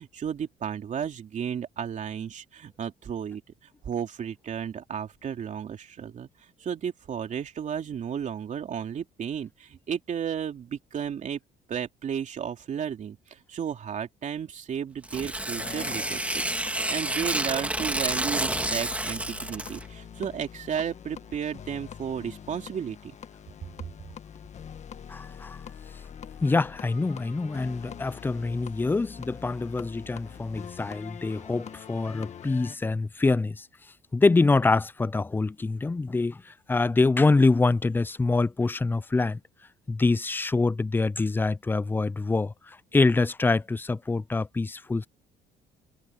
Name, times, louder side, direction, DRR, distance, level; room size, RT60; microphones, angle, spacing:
voice 1, 0.0-3.4 3.8-6.3 6.6-11.4 11.7-23.1, right 8 dB, 45° right, 3.2 m, -33 dB
Tearing, 15.0-19.9, right 1 dB, 10° right, 2.0 m, -29 dB
sound 1, 15.6-32.8, left 8 dB, 45° left, 1.6 m, -44 dB
voice 2, 25.1-25.6 26.4-33.7 34.1-39.4 39.9-45.1, left 3 dB, 10° left, 0.4 m, -25 dB
cardioid pair, 110°, 17 cm